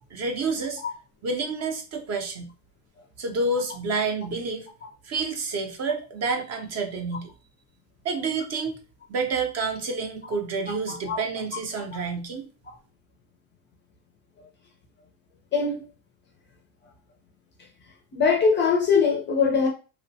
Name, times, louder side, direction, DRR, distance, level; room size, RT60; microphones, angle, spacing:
voice 1, 0.1-0.8 1.2-2.5 3.2-4.7 5.0-7.3 8.0-8.8 9.1-12.5, right 3 dB, 40° right, 0.5 m, -29 dB
voice 2, 15.5-15.9 18.1-19.7, left 5 dB, 30° left, 0.4 m, -21 dB
2.9 x 2.1 x 2.6 m
cardioid pair, 140°, 42 cm